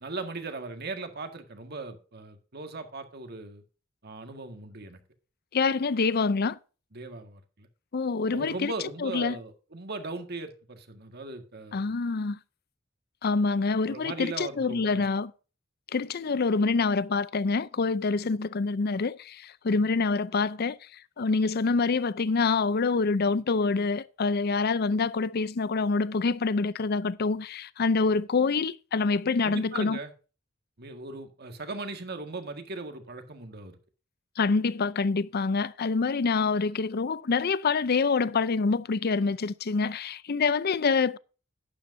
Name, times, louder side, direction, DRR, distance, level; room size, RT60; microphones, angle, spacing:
voice 1, 0.0-3.6 4.0-5.0 6.9-7.7 8.3-11.9 13.8-15.1 29.4-30.1 30.8-33.8, right 3 dB, 55° right, 1.8 m, -38 dB
voice 2, 5.5-6.6 7.9-8.7 9.0-9.4 11.7-12.4 13.2-15.3 15.9-20.8 21.2-30.0 34.4-41.2, left 4 dB, 50° left, 0.5 m, -26 dB
11.5 x 10.5 x 2.7 m
head